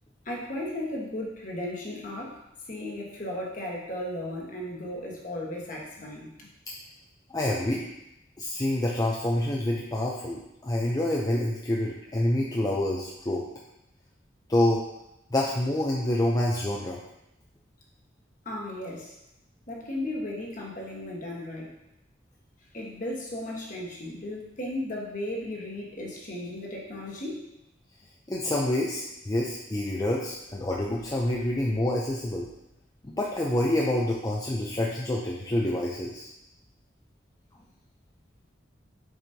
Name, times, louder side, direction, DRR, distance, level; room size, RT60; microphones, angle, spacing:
voice 1, 0.2-6.5 18.4-19.2 19.7-21.7 22.7-27.5, left 1 dB, 45° left, -2 dB, 1.4 m, -35 dB
voice 2, 7.3-7.8 8.4-13.4 14.5-14.8 15.3-17.0 28.3-32.5 33.0-36.3, left 1 dB, 20° left, -3 dB, 0.5 m, -27 dB
7.3 x 4.9 x 2.8 m, 0.87 s
head